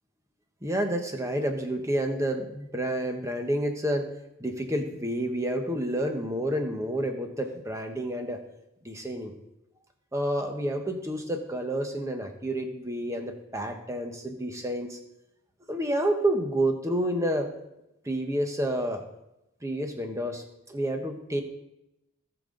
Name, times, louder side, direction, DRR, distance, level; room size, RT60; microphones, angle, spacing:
voice 1, 0.6-4.1 4.4-8.4 8.8-9.3 10.1-15.0 15.7-17.5 18.0-19.0 19.6-21.4, right 1 dB, 15° right, 4 dB, 1.1 m, -29 dB
18.0 x 6.9 x 3.8 m, 0.88 s
head